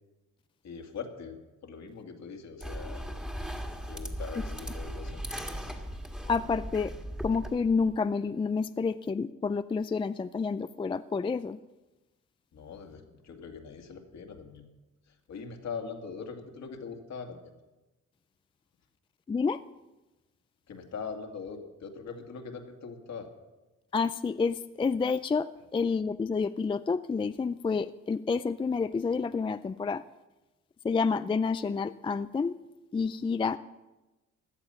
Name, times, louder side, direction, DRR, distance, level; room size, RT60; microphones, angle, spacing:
voice 1, 0.6-3.1 3.9-5.2 12.5-14.6 15.3-17.5 20.7-23.3, left 5 dB, 60° left, 4 dB, 2.3 m, -42 dB
sound 1, 2.6-8.0, equal, 5° right, 1.9 m, -38 dB
voice 2, 6.3-6.9 7.2-11.6 19.3-19.6 23.9-30.0 30.8-32.6 32.9-33.6, left 5 dB, 15° left, 13 dB, 0.4 m, -29 dB
17.0 x 11.5 x 5.7 m, 1.1 s
cardioid pair, 90°, 30 cm